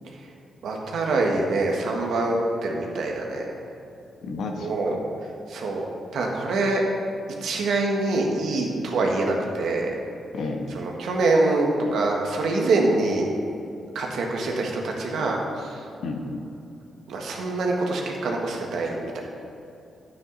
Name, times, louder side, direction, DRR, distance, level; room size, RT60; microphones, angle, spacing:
voice 1, 0.6-3.5 4.6-5.0 5.5-5.8 6.1-6.8 7.4-9.9 10.7-13.3 13.9-15.8 17.1-19.2, right 2 dB, 80° right, 0 dB, 1.5 m, -25 dB
voice 2, 4.2-5.0 10.3-10.7 16.0-16.4, left 3 dB, 75° left, 3 dB, 1.2 m, -31 dB
9.5 x 8.9 x 4.0 m, 2.7 s
cardioid pair, 65°, 0 cm